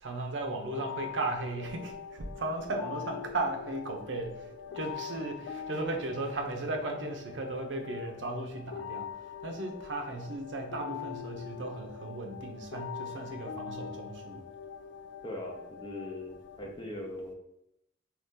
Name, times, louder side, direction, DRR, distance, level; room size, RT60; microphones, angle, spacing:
voice 1, 0.0-9.1 9.4-14.5, right 2 dB, 75° right, 4 dB, 0.5 m, -36 dB
Melancholic Piano Loop, 0.7-16.7, left 7 dB, 85° left, 0.3 m, -43 dB
voice 2, 15.2-17.3, left 1 dB, 25° left, 0 dB, 0.5 m, -40 dB
2.6 x 2.4 x 3.6 m, 0.82 s
head